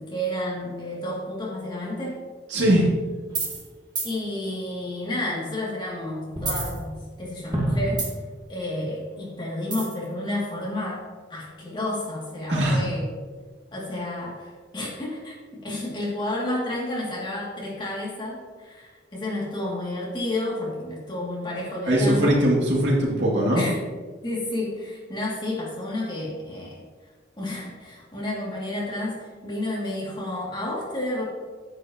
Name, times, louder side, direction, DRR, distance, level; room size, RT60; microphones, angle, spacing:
voice 1, 0.0-2.2 4.0-8.1 8.5-11.0 11.3-13.0 13.7-22.4 23.5-23.8 24.2-26.8 27.4-31.2, left 1 dB, 25° left, -6 dB, 2.5 m, -31 dB
voice 2, 2.5-2.9 12.5-12.8 21.9-23.7, equal, 80° right, -4 dB, 2.6 m, -20 dB
sound 1, 3.3-3.7 4.0-4.1 6.3-7.2 7.5-8.4 9.7-10.1, right 2 dB, 25° right, 1.6 m, -27 dB
9.7 x 8.3 x 3.0 m, 1.5 s
head